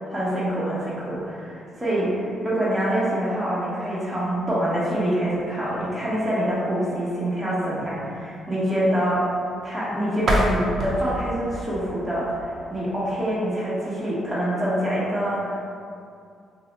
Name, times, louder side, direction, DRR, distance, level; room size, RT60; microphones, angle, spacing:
voice 1, 0.1-9.2 9.6-15.7, right 1 dB, 15° right, -8 dB, 1.1 m, -25 dB
sound 1, 10.2-13.0, equal, 55° right, 0.5 m, -28 dB
2.7 x 2.2 x 4.0 m, 2.4 s
cardioid pair, 90°, 0 cm